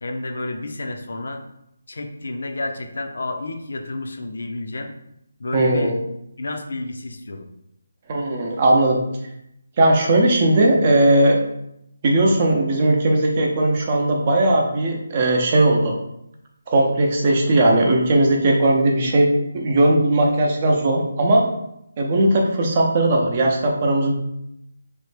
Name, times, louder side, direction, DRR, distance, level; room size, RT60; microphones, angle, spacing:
voice 1, 0.0-1.4 1.9-4.9 5.4-6.0 6.4-7.5, left 2 dB, 70° left, 5 dB, 0.5 m, -30 dB
voice 2, 5.5-6.0 8.1-9.0 9.8-11.4 12.0-15.9 16.7-21.4 22.0-24.1, right 1 dB, 35° right, 0 dB, 0.5 m, -18 dB
3.2 x 2.1 x 3.2 m, 0.80 s
hypercardioid pair, 165°, 0 cm